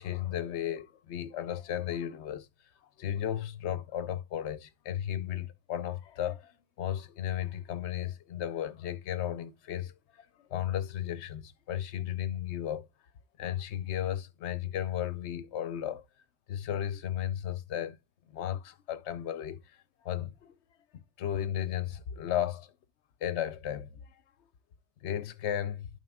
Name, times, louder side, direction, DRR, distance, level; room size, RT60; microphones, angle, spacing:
voice 1, 0.0-2.5 3.0-12.9 13.4-16.0 16.5-18.0 18.3-19.6 20.0-20.6 20.9-22.7 23.2-24.1 25.0-25.9, left 10 dB, 75° left, 1.0 m, -34 dB
11.0 x 5.2 x 2.3 m
omnidirectional pair, 1.2 m